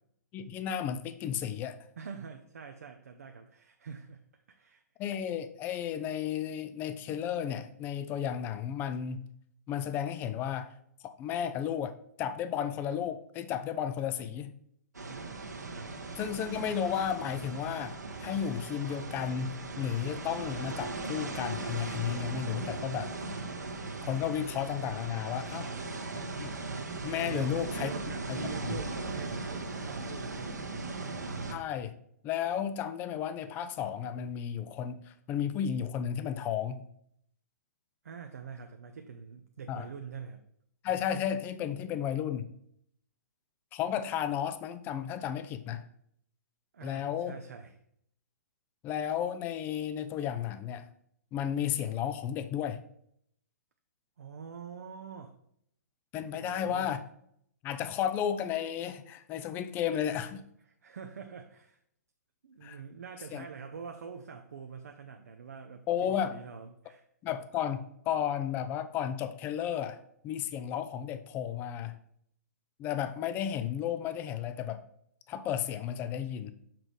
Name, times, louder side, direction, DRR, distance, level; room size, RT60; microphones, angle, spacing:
voice 1, 0.3-1.8 5.0-9.3 9.7-10.7 11.0-14.5 16.2-23.1 24.1-25.7 26.4-26.5 27.0-27.9 28.3-28.4 28.7-28.8 31.5-31.9 32.2-36.8 39.7-39.9 40.8-42.5 43.7-45.8 46.8-47.3 48.8-50.9 51.3-52.8 56.1-57.0 57.6-60.4 62.6-62.8 63.3-63.4 65.9-66.4 67.2-70.0 70.2-72.0 72.8-74.8 75.3-76.5, left 9 dB, 20° left, 0.5 m, -33 dB
voice 2, 2.0-4.8 15.1-15.5 15.7-16.0 25.5-26.4 27.2-31.0 38.0-40.4 46.7-47.8 54.2-55.4 56.3-56.9 60.7-61.8 62.4-67.1, right 6 dB, 60° right, 0.7 m, -45 dB
sound 1, 14.9-31.5, right 3 dB, 75° right, 1.3 m, -38 dB
6.0 x 5.0 x 4.7 m
figure-of-eight pair, 120°, 9 cm